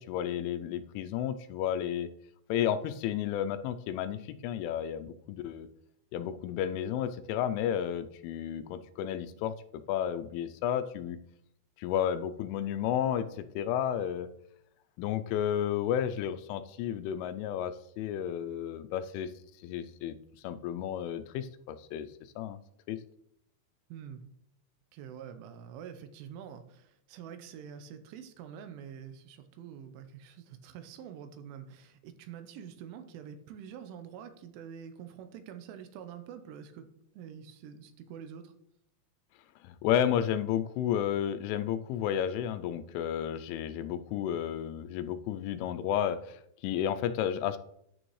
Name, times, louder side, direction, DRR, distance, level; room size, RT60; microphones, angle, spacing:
voice 1, 0.0-2.1 2.5-5.7 6.1-9.5 9.9-11.2 11.8-14.3 15.0-19.3 19.6-20.1 20.4-22.1 22.4-22.6 22.9-23.0 39.6-47.6, left 10 dB, 85° left, 10 dB, 3.0 m, -32 dB
voice 2, 23.9-24.2 24.9-36.9 37.1-38.5, right 8 dB, 80° right, 8 dB, 3.2 m, -46 dB
9.7 x 8.9 x 3.1 m, 0.73 s
omnidirectional pair, 5.7 m